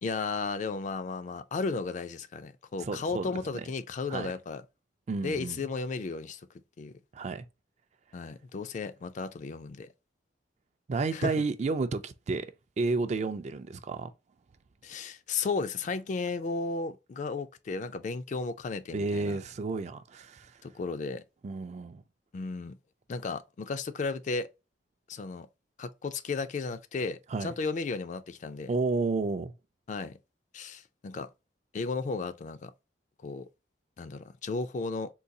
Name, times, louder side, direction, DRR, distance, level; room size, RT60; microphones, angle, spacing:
voice 1, 0.0-4.6 5.2-6.4 6.8-6.9 8.1-9.9 11.1-11.3 14.8-19.4 20.6-21.2 22.3-22.8 23.1-24.5 25.1-25.5 25.8-28.7 29.9-30.2 30.5-31.3 31.7-32.7 33.2-33.5 34.0-35.1, left 4 dB, 45° left, 0.3 m, -34 dB
voice 2, 2.8-3.3 3.5-3.6 4.1-4.3 5.1-5.6 7.1-7.5 10.9-12.5 12.8-14.1 18.9-20.5 21.4-22.0 27.3-27.5 28.7-29.5, right 3 dB, 40° right, 0.3 m, -31 dB
3.9 x 2.3 x 2.6 m
head